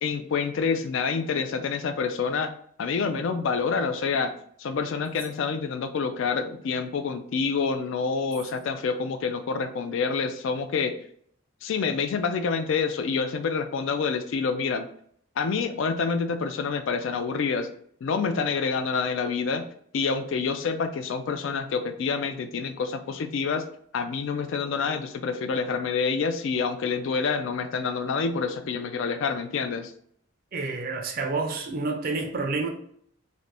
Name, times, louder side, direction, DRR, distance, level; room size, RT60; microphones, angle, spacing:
voice 1, 0.0-2.5 2.8-4.3 4.6-11.0 11.6-14.9 15.4-17.7 18.0-19.7 19.9-23.6 23.9-29.9, left 5 dB, 60° left, 0.3 m, -27 dB
voice 2, 30.5-32.7, right 3 dB, 40° right, 0.4 m, -29 dB
2.6 x 2.6 x 3.2 m
head